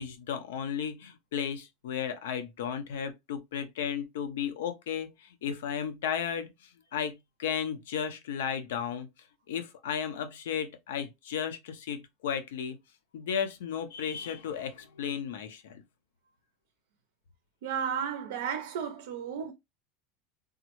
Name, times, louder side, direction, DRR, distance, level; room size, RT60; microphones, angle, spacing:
voice 1, 0.0-9.1 9.5-12.8 13.1-15.8, left 8 dB, 90° left, 0.5 m, -34 dB
voice 2, 17.6-19.5, right 7 dB, 85° right, 0.4 m, -33 dB
3.5 x 2.1 x 2.9 m
supercardioid pair, 115°, 0 cm